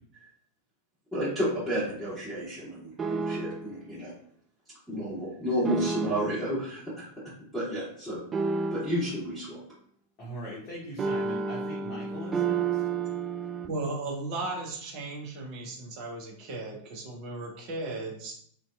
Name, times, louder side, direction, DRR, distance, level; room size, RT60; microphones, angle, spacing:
voice 1, 1.1-4.1 4.9-7.1 7.5-8.2 8.7-9.6, equal, 5° right, -14 dB, 1.4 m, -31 dB
sound 1, 3.0-3.8 5.6-6.5 8.3-9.2 11.0-13.7, right 5 dB, 20° right, 0.3 m, -31 dB
voice 2, 10.2-12.8, equal, 35° left, -6 dB, 0.8 m, -40 dB
voice 3, 13.7-18.4, right 2 dB, 40° right, 0 dB, 0.7 m, -36 dB
2.6 x 2.3 x 2.3 m, 0.64 s
figure-of-eight pair, 90°, 0 cm